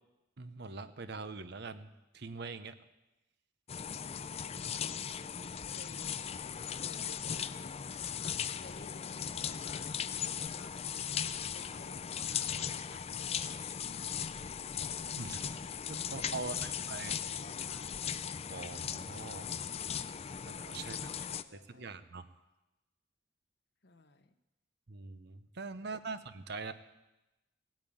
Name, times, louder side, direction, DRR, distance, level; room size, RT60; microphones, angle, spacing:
voice 1, 0.4-2.8 15.2-17.2 18.5-19.5 20.0-20.1 20.5-21.2 21.5-22.3 24.9-26.7, right 4 dB, 60° right, 11 dB, 0.9 m, -43 dB
sound 1, 3.7-21.4, left 8 dB, 30° left, 0.4 m, -38 dB
voice 2, 5.6-10.8 11.5-14.0 14.4-14.5 16.3-18.0 20.7-22.0 23.8-24.3 25.8-25.9, left 3 dB, 60° left, 9 dB, 1.1 m, -57 dB
17.5 x 9.0 x 8.7 m, 1.0 s
head